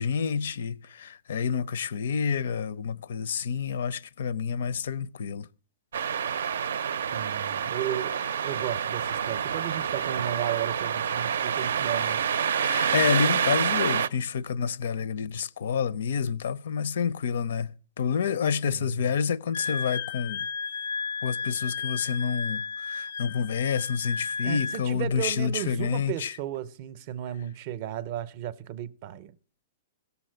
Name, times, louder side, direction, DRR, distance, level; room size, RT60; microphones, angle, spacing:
voice 1, 0.0-5.5 12.6-17.7 18.0-20.5 21.2-26.3, left 6 dB, 70° left, 0.5 m, -28 dB
sound 1, 5.9-14.1, right 8 dB, 85° right, 0.5 m, -28 dB
voice 2, 7.1-12.2 18.7-19.1 24.4-29.3, right 12 dB, 35° right, 0.6 m, -34 dB
Wind instrument woodwind instrument, 19.5-24.8, left 5 dB, 90° left, 0.9 m, -33 dB
17.0 x 7.0 x 7.6 m
hypercardioid pair, 170°, 0 cm